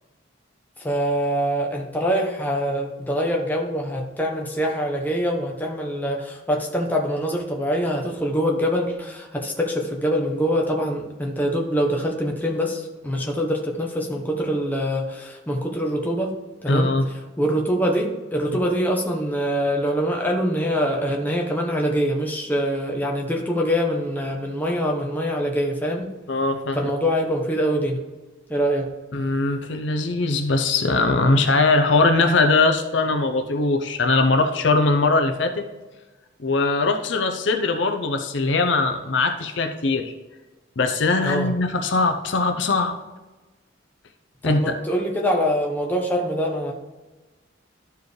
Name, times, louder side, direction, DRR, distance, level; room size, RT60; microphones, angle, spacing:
voice 1, 0.8-16.3 16.6-16.9 17.4-26.1 26.7-28.0 28.5-28.9 41.2-41.5 44.4-46.7, equal, 10° left, -1 dB, 1.0 m, -24 dB
voice 2, 16.7-17.1 26.3-26.9 29.1-35.7 36.4-40.1 40.8-43.0 44.4-44.7, left 3 dB, 65° left, 6 dB, 0.7 m, -21 dB
12.5 x 4.7 x 3.2 m, 1.2 s
head